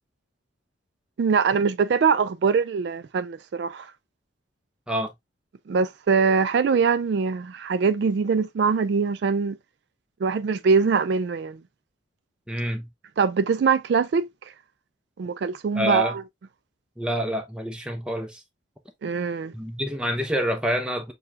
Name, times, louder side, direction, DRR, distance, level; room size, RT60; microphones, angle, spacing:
voice 1, 1.2-3.9 5.7-9.6 10.2-11.6 13.2-14.3 15.2-16.2 19.0-19.5, right 5 dB, 60° right, 0.3 m, -23 dB
voice 2, 12.5-12.9 15.8-16.1 17.0-18.4 19.5-21.1, equal, 5° right, 0.7 m, -27 dB
6.6 x 2.3 x 2.7 m
head